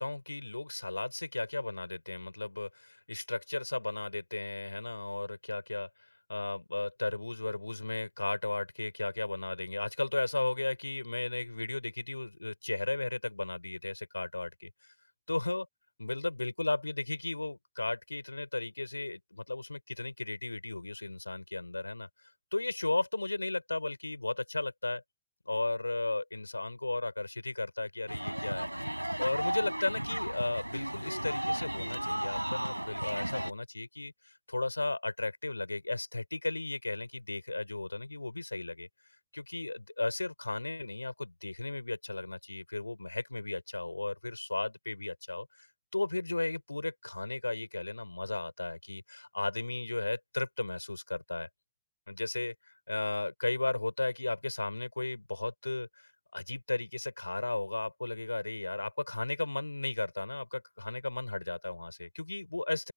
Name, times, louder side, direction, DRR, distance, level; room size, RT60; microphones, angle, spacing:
voice 1, 0.0-5.9 6.3-14.7 15.3-15.7 16.0-22.1 22.5-25.0 25.5-28.7 29.2-34.1 34.5-38.9 39.3-45.7 45.9-51.5 52.1-52.5 52.9-62.9, left 2 dB, 85° left, 6.9 m, -35 dB
sound 1, 28.1-33.5, right 1 dB, 90° right, 6.8 m, -34 dB
open air
figure-of-eight pair, 90°, 0 cm